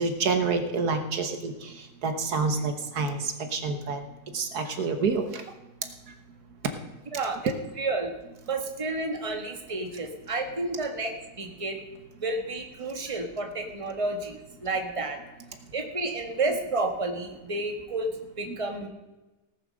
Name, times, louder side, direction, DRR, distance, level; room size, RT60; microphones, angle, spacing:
voice 1, 0.0-4.0 4.3-5.4, right 4 dB, 70° right, 7 dB, 1.7 m, -28 dB
voice 2, 7.1-8.1 8.5-11.8 12.2-15.2 15.7-18.9, right 2 dB, 20° right, 4 dB, 1.5 m, -31 dB
17.5 x 7.4 x 6.4 m, 1.0 s
omnidirectional pair, 1.7 m